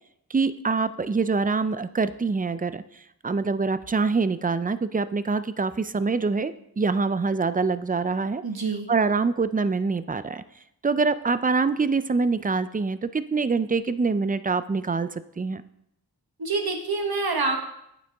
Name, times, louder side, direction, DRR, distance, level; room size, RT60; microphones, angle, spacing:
voice 1, 0.3-2.8 3.2-8.4 8.9-10.4 10.8-15.1 15.4-15.6, right 4 dB, 25° right, 14 dB, 0.4 m, -25 dB
voice 2, 8.4-8.9 16.4-17.6, right 3 dB, 65° right, 4 dB, 1.3 m, -26 dB
9.1 x 8.2 x 3.5 m, 0.79 s
wide cardioid pair, 65°, 39 cm